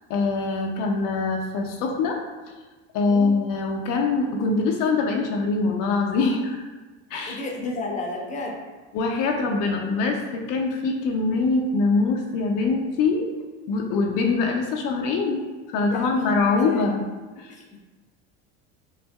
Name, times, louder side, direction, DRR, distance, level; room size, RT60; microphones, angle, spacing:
voice 1, 0.1-2.2 2.9-6.7 7.1-7.7 8.9-13.3 13.7-17.0 17.4-17.5, left 3 dB, 60° left, 1 dB, 0.6 m, -24 dB
voice 2, 7.3-8.6 15.9-16.8 17.6-17.8, left 2 dB, 20° left, 0 dB, 0.7 m, -32 dB
5.5 x 2.6 x 2.3 m, 1.3 s
supercardioid pair, 95°, 35 cm